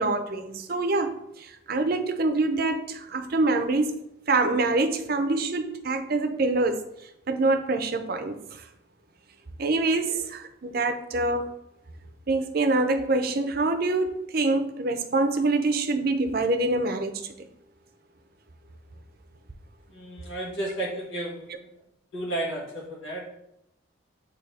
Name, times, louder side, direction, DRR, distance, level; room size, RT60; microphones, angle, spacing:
voice 1, 0.0-4.0 4.3-6.8 7.3-8.6 9.6-11.5 12.3-17.3, right 2 dB, 50° right, 7 dB, 0.6 m, -25 dB
voice 2, 19.9-21.7 22.1-23.4, right 1 dB, 80° left, -4 dB, 1.6 m, -33 dB
8.6 x 2.9 x 4.1 m, 0.83 s
head